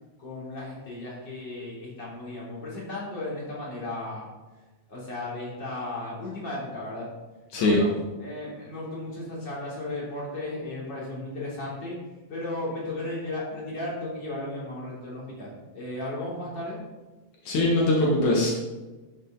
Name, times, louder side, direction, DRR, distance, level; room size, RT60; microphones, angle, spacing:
voice 1, 0.2-4.3 4.9-7.1 7.6-7.9 8.2-12.0 12.3-16.8, left 2 dB, 35° left, -6 dB, 3.8 m, -35 dB
voice 2, 17.5-18.5, left 2 dB, 80° left, -3 dB, 3.0 m, -21 dB
11.5 x 6.6 x 3.9 m, 1.2 s
omnidirectional pair, 3.3 m